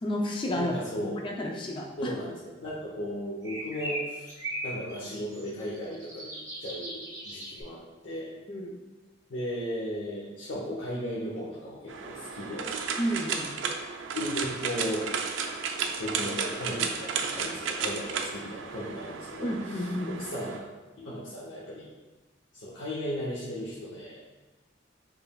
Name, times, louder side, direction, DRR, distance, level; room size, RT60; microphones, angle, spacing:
voice 1, 0.0-0.7 1.0-2.1 8.5-8.7 13.0-13.5 19.4-20.1, equal, 25° left, 0 dB, 0.4 m, -31 dB
voice 2, 0.5-1.2 2.0-2.3 2.6-4.3 4.6-6.3 6.6-8.4 9.3-12.8 14.1-15.1 16.0-20.7 21.0-21.9 22.5-24.2, equal, 75° left, -7 dB, 0.8 m, -36 dB
sound 1, 3.4-7.6, right 1 dB, 15° right, 0.8 m, -38 dB
sound 2, 11.9-20.6, right 5 dB, 75° right, 0.4 m, -33 dB
5.3 x 3.3 x 2.2 m, 1.2 s
head